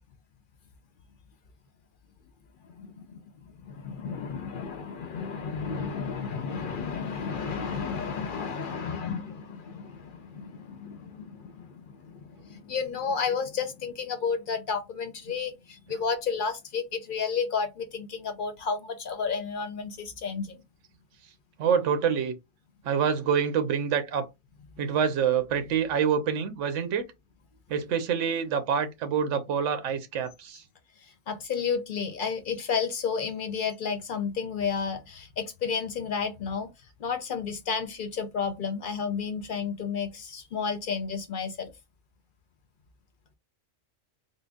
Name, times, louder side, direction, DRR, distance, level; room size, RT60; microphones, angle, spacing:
voice 1, 2.6-3.2 3.5-20.6 24.8-24.9 31.0-41.7, left 6 dB, 60° left, 0.6 m, -32 dB
voice 2, 21.6-22.3 22.8-24.3 24.8-27.1 27.7-30.6, right 7 dB, 90° right, 0.9 m, -26 dB
3.7 x 2.0 x 3.5 m
omnidirectional pair, 1.2 m